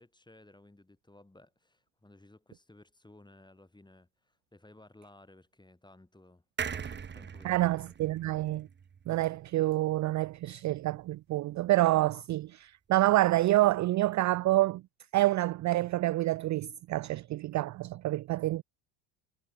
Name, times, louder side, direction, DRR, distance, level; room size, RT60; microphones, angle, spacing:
voice 1, 0.0-6.4 6.7-7.9 8.2-8.4, left 2 dB, 10° left, 8.0 m, -57 dB
sound 1, 6.6-10.1 10.4-10.5 10.7-10.8, right 7 dB, 20° right, 0.9 m, -41 dB
voice 2, 7.4-8.7 9.1-14.8 15.1-18.6, right 16 dB, 40° right, 0.4 m, -27 dB
supercardioid pair, 100°, 50 cm